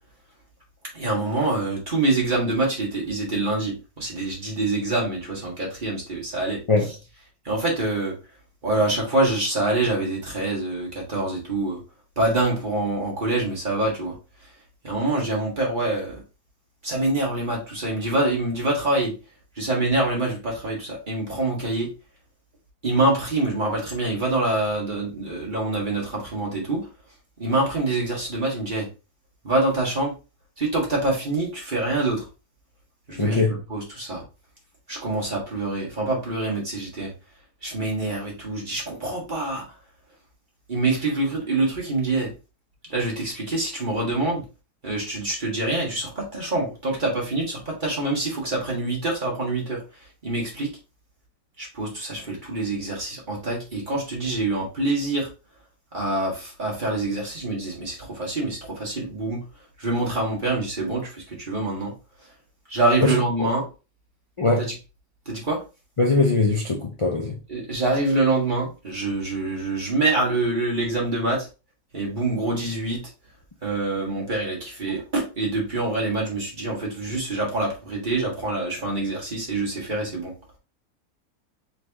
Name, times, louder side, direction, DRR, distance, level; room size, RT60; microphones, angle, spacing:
voice 1, 0.9-6.6 7.4-8.1 8.6-11.8 12.2-14.1 14.8-16.2 16.8-19.1 19.6-21.9 22.8-26.8 27.4-28.9 29.4-30.1 30.6-32.2 33.1-34.2 34.9-37.1 37.6-39.6 40.7-42.3 42.9-44.4 44.8-49.8 50.2-50.7 51.6-55.3 55.9-59.4 59.8-61.9 62.7-63.7 64.6-64.7 65.2-65.6 67.5-71.5 71.9-73.0 73.6-80.3, right 2 dB, 35° right, 1.7 m, -25 dB
voice 2, 33.2-33.6 63.0-63.5 64.4-64.7 66.0-67.4, left 3 dB, 35° left, 0.5 m, -21 dB
4.1 x 3.2 x 3.5 m
omnidirectional pair, 1.5 m